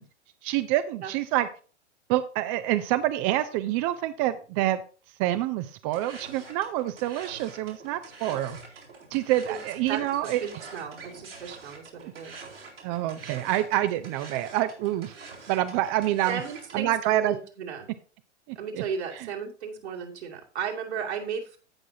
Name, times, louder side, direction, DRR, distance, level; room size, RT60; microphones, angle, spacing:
voice 1, 0.4-1.5 2.1-4.8 5.2-8.6 9.1-10.4 12.8-15.2 15.5-16.4 16.7-17.4 18.5-18.8, right 14 dB, 30° right, 12 dB, 0.5 m, -27 dB
sound 1, 5.9-16.9, right 4 dB, 85° right, 4.0 m, -46 dB
voice 2, 10.4-12.5 16.3-17.9 18.5-21.6, right 7 dB, 70° right, 0 dB, 2.6 m, -35 dB
16.5 x 6.1 x 2.7 m, 0.37 s
figure-of-eight pair, 105°, 35 cm